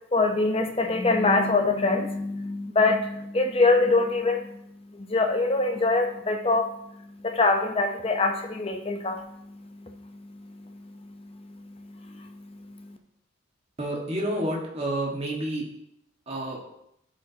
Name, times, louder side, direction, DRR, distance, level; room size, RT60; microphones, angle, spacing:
voice 1, 0.1-13.0, left 3 dB, 30° left, 4 dB, 0.7 m, -25 dB
voice 2, 13.8-15.6 16.3-16.6, right 1 dB, 30° right, -3 dB, 1.5 m, -29 dB
12.0 x 5.1 x 2.8 m, 0.78 s
head